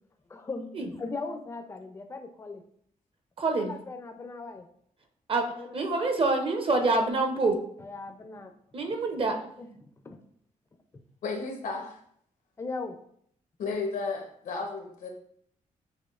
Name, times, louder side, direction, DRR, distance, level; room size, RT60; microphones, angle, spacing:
voice 1, 0.3-2.6 3.7-4.7 5.6-5.7 7.8-8.5 9.6-9.8 10.0-10.2 10.9-11.0 12.6-13.0, left 3 dB, 20° left, 6 dB, 0.4 m, -38 dB
voice 2, 3.4-3.8 5.3-5.5 5.7-7.6 8.7-9.3, right 3 dB, 40° right, 4 dB, 0.7 m, -26 dB
voice 3, 11.2-12.0 13.6-15.1, left 4 dB, 80° left, 2 dB, 0.9 m, -33 dB
6.1 x 2.5 x 2.4 m, 0.66 s
cardioid pair, 100°, 14 cm